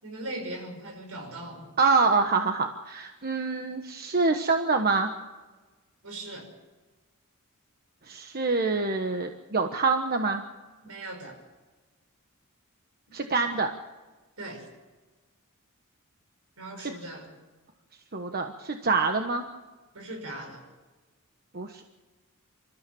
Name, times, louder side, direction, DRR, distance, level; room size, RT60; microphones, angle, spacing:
voice 1, 0.0-1.7 6.0-6.5 10.8-11.4 14.4-14.7 16.6-17.3 19.9-20.6, right 1 dB, 75° right, 4 dB, 5.9 m, -39 dB
voice 2, 1.8-5.1 8.1-10.4 13.1-13.7 16.8-16.9 18.1-19.4 21.5-21.8, right 4 dB, 45° right, 5 dB, 1.2 m, -26 dB
28.0 x 14.0 x 7.1 m, 1.2 s
head